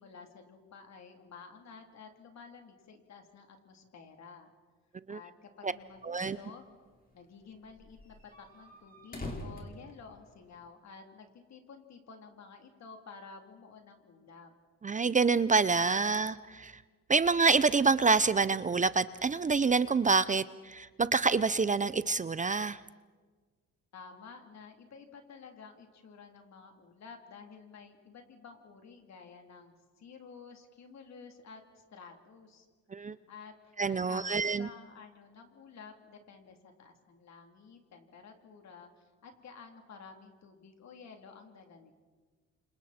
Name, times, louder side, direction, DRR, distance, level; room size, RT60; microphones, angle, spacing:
voice 1, 0.0-4.5 5.1-6.7 7.1-14.5 23.9-32.7 33.0-41.9, left 5 dB, 60° left, 4 dB, 3.3 m, -52 dB
sound 1, 5.8-6.4 6.8-6.9 7.1-7.2 7.6-10.6, left 1 dB, 30° left, 4.4 m, -45 dB
voice 2, 6.0-6.4 14.8-16.7 17.1-22.8 32.9-33.1 33.8-34.7, right 4 dB, 25° right, 16 dB, 0.6 m, -27 dB
29.5 x 26.5 x 4.4 m, 1.4 s
cardioid pair, 90°, 30 cm